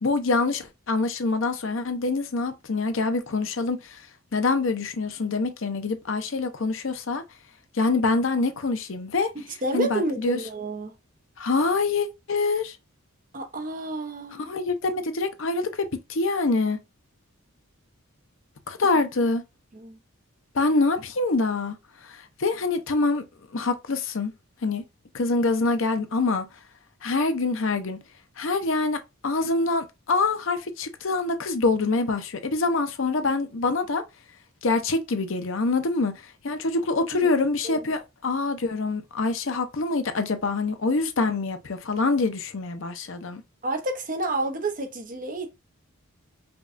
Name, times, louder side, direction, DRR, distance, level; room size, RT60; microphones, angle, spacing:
voice 1, 0.0-4.0 4.3-7.2 7.7-9.3 9.7-10.4 11.4-12.8 14.4-16.8 18.7-19.4 20.5-21.8 22.1-23.2 23.5-24.3 24.6-24.8 25.1-26.5 27.0-28.0 28.4-34.0 34.6-43.4, left 3 dB, 60° left, 0.6 m, -25 dB
voice 2, 9.3-10.9 13.3-14.5 19.7-20.0 37.2-37.3 37.6-37.9 43.6-45.5, right 2 dB, 40° right, 0.9 m, -30 dB
5.2 x 2.3 x 2.5 m
head